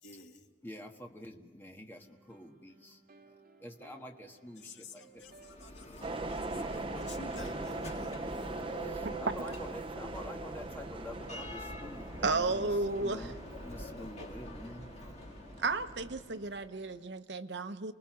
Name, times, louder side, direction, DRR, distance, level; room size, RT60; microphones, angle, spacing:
voice 1, 0.0-0.5 4.6-8.2, left 3 dB, 85° left, 3 dB, 2.0 m, -51 dB
voice 2, 0.6-3.3 3.6-5.2 5.8-6.0 8.8-12.7 13.0-14.9, left 1 dB, 10° left, 2 dB, 1.5 m, -47 dB
sound 1, 2.0-7.0, right 3 dB, 50° right, 2.4 m, -60 dB
Bell, 5.2-17.0, equal, 35° left, 2.1 m, -46 dB
sound 2, 6.0-16.2, right 2 dB, 30° right, 0.7 m, -41 dB
voice 3, 12.2-13.3 15.6-17.9, right 3 dB, 70° right, 10 dB, 0.9 m, -33 dB
29.0 x 20.0 x 6.2 m, 1.5 s
head